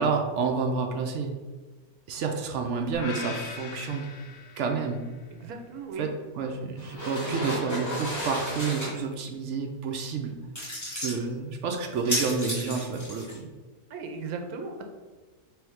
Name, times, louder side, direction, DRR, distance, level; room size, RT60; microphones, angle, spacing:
voice 1, 0.0-1.3 2.1-4.1 4.6-5.0 6.0-6.1 6.3-10.3 10.9-13.5, right 5 dB, 65° right, 3 dB, 0.8 m, -29 dB
sound 1, 2.9-5.1, left 4 dB, 90° left, 1.1 m, -40 dB
voice 2, 5.3-6.1 13.9-14.8, right 4 dB, 85° right, 4 dB, 1.1 m, -37 dB
sound 2, 6.8-8.9 10.5-11.2 11.9-13.4, equal, 15° left, 1.2 m, -32 dB
3.5 x 2.6 x 4.6 m, 1.3 s
omnidirectional pair, 1.6 m